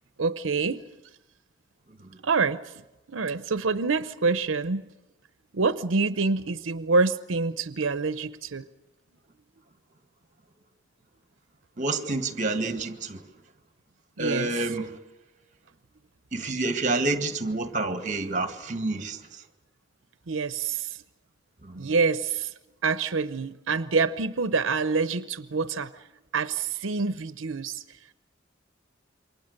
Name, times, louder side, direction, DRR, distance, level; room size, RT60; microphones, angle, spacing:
voice 1, 0.2-0.8 2.2-2.7 3.1-4.8 5.5-8.6 14.2-14.5 20.3-21.0 21.7-22.5 22.8-25.9 26.3-27.8, right 4 dB, 90° right, 0.8 m, -26 dB
voice 2, 11.8-13.2 14.2-14.9 16.3-19.2 21.6-21.9, right 2 dB, 40° right, 1.7 m, -28 dB
28.0 x 24.0 x 6.6 m
head